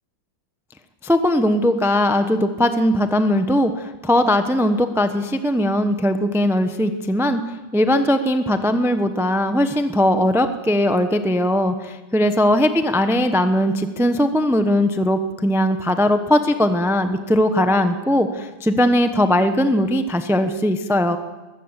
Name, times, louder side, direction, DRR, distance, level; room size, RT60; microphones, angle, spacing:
voice 1, 1.0-7.4 7.7-21.2, left 1 dB, 5° right, 8 dB, 0.3 m, -19 dB
21.5 x 16.0 x 8.3 m, 1.2 s
omnidirectional pair, 2.2 m